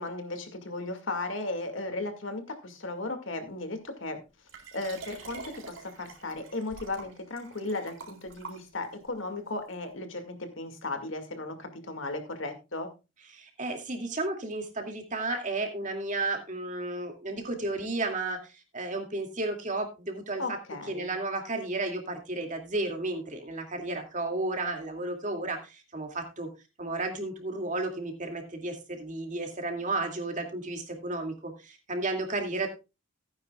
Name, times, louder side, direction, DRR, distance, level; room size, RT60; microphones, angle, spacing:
voice 1, 0.0-4.2 4.7-12.9 20.4-21.1, left 2 dB, 75° left, 6 dB, 2.2 m, -36 dB
Liquid, 4.5-9.1 9.7-9.8, right 4 dB, 80° right, 4.1 m, -46 dB
voice 2, 13.3-20.6 20.9-26.5 26.8-32.7, right 2 dB, 40° right, 4 dB, 2.4 m, -33 dB
16.5 x 9.6 x 2.4 m, 0.27 s
head